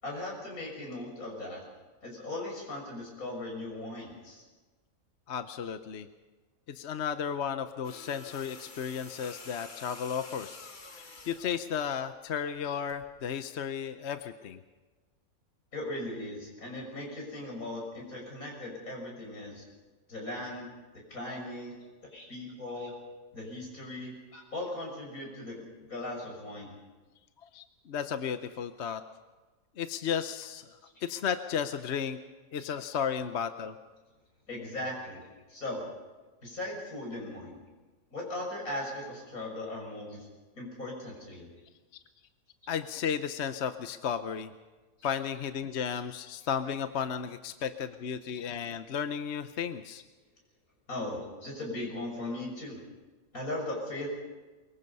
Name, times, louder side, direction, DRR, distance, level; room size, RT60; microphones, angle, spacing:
voice 1, 0.0-1.6 2.0-4.4 15.7-19.6 20.1-20.7 21.1-21.7 22.1-22.9 23.3-26.8 32.6-32.7 34.5-35.2 35.5-35.8 36.4-37.6 38.1-40.3 40.5-41.5 50.9-52.8 53.3-54.1, left 1 dB, 70° left, 0 dB, 6.8 m, -38 dB
voice 2, 5.3-6.1 6.7-14.6 27.4-29.0 29.8-30.7 31.0-32.2 32.5-33.7 42.7-44.5 45.0-50.0, left 7 dB, 55° left, 10 dB, 1.0 m, -34 dB
sound 1, 7.8-11.7 12.9-13.1, left 3 dB, 35° left, 1.4 m, -48 dB
23.5 x 22.0 x 5.5 m, 1.2 s
omnidirectional pair, 1.5 m